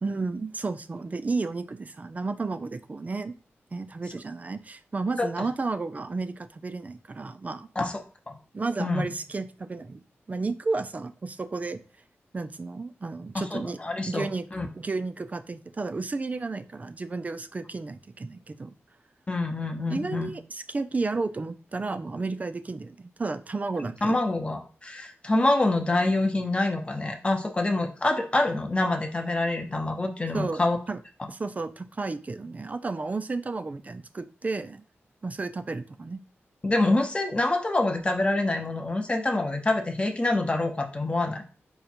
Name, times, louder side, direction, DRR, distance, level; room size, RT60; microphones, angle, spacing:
voice 1, 0.0-3.3 3.7-7.7 8.5-10.0 10.3-11.8 12.3-13.8 14.1-14.5 14.7-18.7 19.9-24.2 30.3-30.6 30.9-31.0 31.3-34.8 35.2-36.2, right 3 dB, 35° right, 10 dB, 0.4 m, -32 dB
voice 2, 13.3-14.7 19.3-20.3 24.0-30.8 36.6-41.4, left 2 dB, 25° left, 3 dB, 0.8 m, -26 dB
5.1 x 2.4 x 4.3 m, 0.41 s
wide cardioid pair, 90°, 5 cm